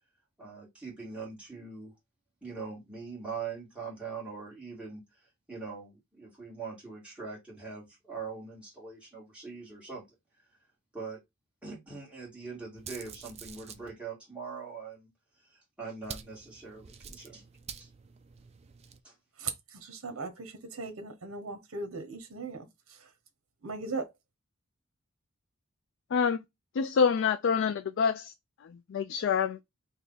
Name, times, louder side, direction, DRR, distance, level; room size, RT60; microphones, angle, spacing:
voice 1, 0.4-1.9 2.4-5.0 5.5-10.0 10.9-11.2 11.6-15.1 15.5-17.4 17.8-17.9 19.0-19.1, right 5 dB, 5° right, 2.1 m, -42 dB
sound 1, 12.7-13.9 16.0-19.0, right 7 dB, 30° right, 0.4 m, -47 dB
voice 2, 19.4-23.1 23.6-24.1, right 4 dB, 75° right, 0.9 m, -38 dB
voice 3, 26.1-26.4 26.7-28.3 28.6-29.6, left 6 dB, 60° left, 0.3 m, -27 dB
3.4 x 2.7 x 3.9 m
head